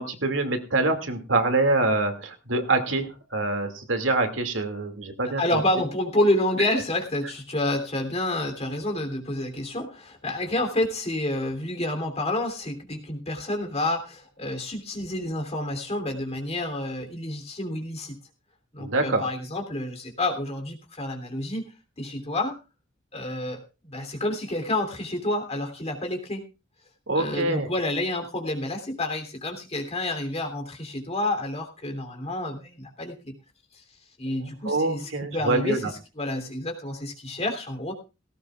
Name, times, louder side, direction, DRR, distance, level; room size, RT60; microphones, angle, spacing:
voice 1, 0.0-5.4 18.8-19.2 27.1-27.7 34.6-35.9, right 2 dB, 80° right, 6 dB, 2.4 m, -25 dB
voice 2, 5.4-18.2 18.7-21.7 22.0-22.6 23.1-26.4 27.1-33.3 34.2-37.9, left 1 dB, 35° left, 4 dB, 3.2 m, -29 dB
18.5 x 17.0 x 2.4 m, 0.30 s
head